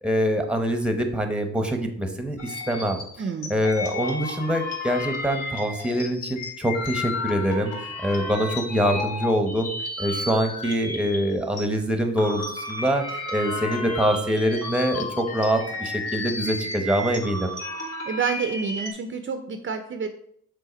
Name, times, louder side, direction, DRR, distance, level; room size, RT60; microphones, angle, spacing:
voice 1, 0.0-3.0 3.5-7.7 8.0-9.7 10.0-17.5, equal, 5° right, 6 dB, 0.9 m, -24 dB
sound 1, 2.4-11.6 12.0-18.9, left 2 dB, 55° left, 2.0 m, -33 dB
voice 2, 3.2-3.5 18.1-20.1, right 6 dB, 40° right, 7 dB, 0.6 m, -28 dB
5.6 x 3.8 x 5.1 m, 0.68 s
cardioid pair, 90°, 30 cm